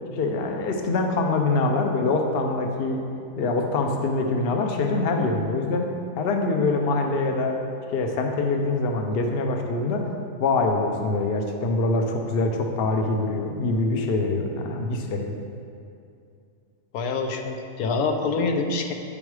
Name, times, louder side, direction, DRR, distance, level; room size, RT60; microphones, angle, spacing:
voice 1, 0.1-3.0 3.4-5.9 6.2-7.5 7.9-10.0 10.4-15.3, left 3 dB, 50° left, 3 dB, 0.8 m, -24 dB
voice 2, 16.9-18.9, left 4 dB, 80° left, 4 dB, 1.1 m, -26 dB
8.9 x 5.4 x 4.7 m, 2.5 s
omnidirectional pair, 1.5 m